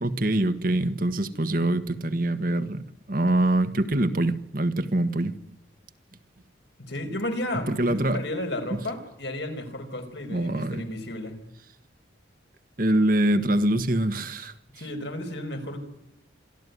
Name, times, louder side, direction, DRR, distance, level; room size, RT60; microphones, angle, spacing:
voice 1, 0.0-2.8 3.1-5.3 7.7-8.2 10.3-10.8 12.8-14.5, right 1 dB, 45° right, 10 dB, 1.5 m, -24 dB
voice 2, 6.8-11.4 14.8-15.8, left 1 dB, 65° left, 5 dB, 5.0 m, -33 dB
26.5 x 13.0 x 9.6 m, 0.78 s
head